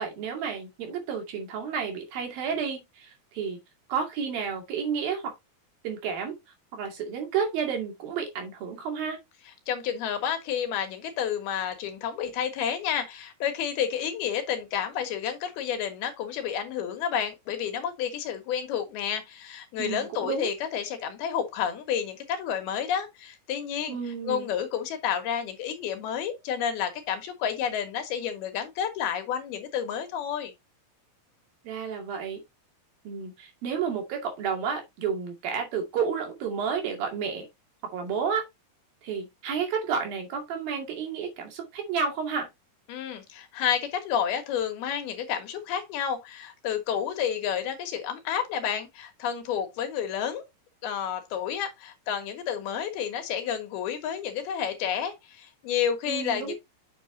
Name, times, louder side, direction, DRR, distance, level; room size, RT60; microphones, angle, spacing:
voice 1, 0.0-3.6 3.9-5.3 5.8-6.4 6.7-9.2 19.8-20.5 23.9-24.5 31.6-32.4 33.1-37.5 37.9-38.4 39.0-42.5 56.1-56.5, right 6 dB, 70° right, 4.1 m, -31 dB
voice 2, 9.7-24.0 24.3-30.5 42.9-50.4 50.8-56.5, left 8 dB, 85° left, 3.6 m, -30 dB
8.6 x 6.9 x 2.7 m
omnidirectional pair, 4.3 m